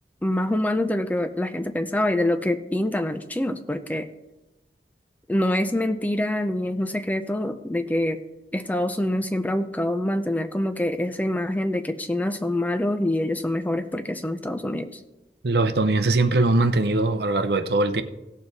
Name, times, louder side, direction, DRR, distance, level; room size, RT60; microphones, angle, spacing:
voice 1, 0.2-4.1 5.3-8.2 8.5-15.0, left 1 dB, 10° left, 8 dB, 0.4 m, -25 dB
voice 2, 15.4-18.0, right 2 dB, 65° right, 11 dB, 0.7 m, -21 dB
16.5 x 6.9 x 4.0 m, 1.0 s
head